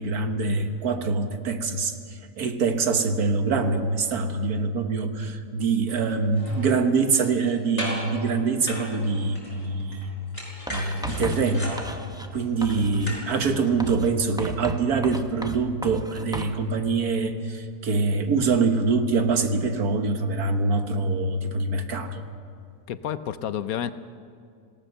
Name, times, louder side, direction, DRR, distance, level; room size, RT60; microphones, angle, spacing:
voice 1, 0.0-10.1 10.7-11.8 12.3-22.2, right 4 dB, 70° right, 7 dB, 1.8 m, -24 dB
sound 1, 5.9-6.0 6.3-7.5 7.8-8.2 8.7-10.1 10.3-13.3 13.7-13.8, equal, 25° left, 5.7 m, -36 dB
Writing, 10.7-12.3 12.6-13.2 13.8-16.6, right 1 dB, 5° right, 0.6 m, -36 dB
voice 2, 22.9-23.9, left 10 dB, 70° left, 13 dB, 1.1 m, -30 dB
26.0 x 18.0 x 6.8 m, 2.3 s
omnidirectional pair, 1.7 m